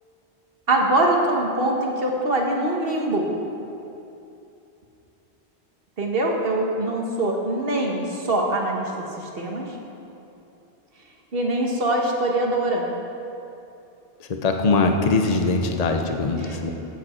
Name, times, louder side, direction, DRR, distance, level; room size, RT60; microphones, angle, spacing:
voice 1, 0.7-3.3 6.0-8.9 9.4-9.6 11.3-12.8 16.4-16.7, right 1 dB, 55° right, 0 dB, 1.5 m, -23 dB
voice 2, 14.2-16.7, left 3 dB, 40° left, 4 dB, 0.8 m, -22 dB
14.0 x 7.9 x 4.4 m, 2.8 s
omnidirectional pair, 1.1 m